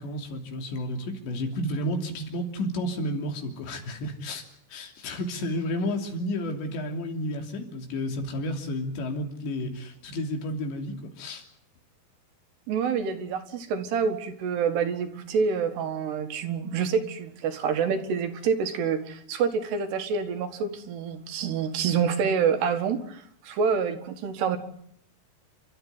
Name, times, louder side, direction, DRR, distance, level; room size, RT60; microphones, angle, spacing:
voice 1, 0.0-4.5 4.7-11.4, left 1 dB, 75° left, 4 dB, 5.2 m, -31 dB
voice 2, 12.7-24.6, right 6 dB, 70° right, 8 dB, 3.7 m, -27 dB
30.0 x 13.0 x 9.5 m, 0.67 s
omnidirectional pair, 5.2 m